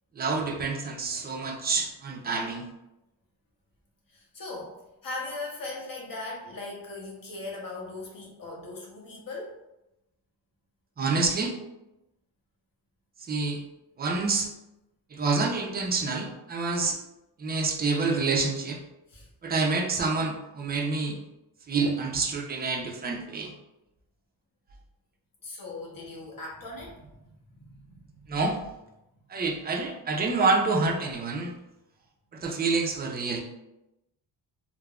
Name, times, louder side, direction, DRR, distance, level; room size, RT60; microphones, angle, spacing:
voice 1, 0.2-2.6 11.0-11.6 13.2-13.6 14.0-14.5 15.1-17.0 17.4-18.8 19.4-21.2 21.7-23.5 28.3-28.6 29.3-31.5 32.3-33.4, right 3 dB, 25° right, 1 dB, 0.3 m, -27 dB
voice 2, 4.1-9.6 19.1-19.3 25.4-28.4, left 2 dB, 50° left, -1 dB, 0.8 m, -39 dB
3.4 x 2.0 x 2.3 m, 0.91 s
cardioid pair, 110°, 45 cm